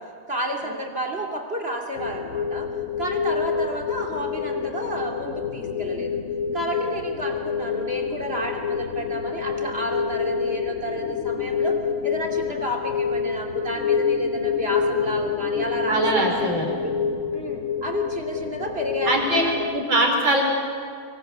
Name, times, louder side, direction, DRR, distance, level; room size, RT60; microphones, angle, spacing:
voice 1, 0.3-2.7 3.0-6.2 6.5-11.8 12.0-16.5 16.8-16.9 17.3-19.6, right 1 dB, 30° right, 1 dB, 3.0 m, -31 dB
sound 1, 1.9-19.8, left 6 dB, 45° left, 1.2 m, -27 dB
voice 2, 15.9-16.8 19.0-19.4 19.7-20.4, right 1 dB, 70° right, 1 dB, 5.8 m, -21 dB
26.0 x 23.0 x 8.1 m, 2.2 s
omnidirectional pair, 2.2 m